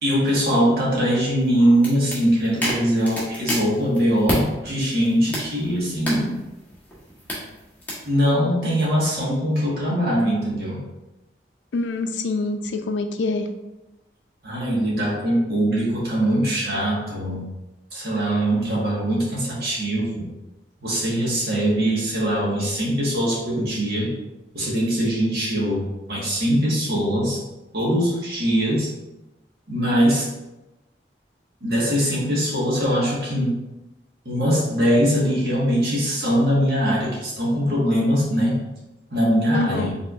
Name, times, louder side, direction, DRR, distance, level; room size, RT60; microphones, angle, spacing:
voice 1, 0.0-6.4 8.0-10.8 14.4-17.4 17.9-20.3 20.8-24.1 24.5-27.4 27.7-28.9 29.7-30.3 31.6-33.6 34.2-38.6 39.1-39.9, equal, 60° right, -5 dB, 1.4 m, -22 dB
sound 1, 1.4-4.4 4.9-8.1, equal, 10° left, 1.1 m, -31 dB
voice 2, 11.7-13.5 39.5-39.9, left 3 dB, 90° left, 7 dB, 0.4 m, -25 dB
4.7 x 3.5 x 2.4 m, 1.0 s
head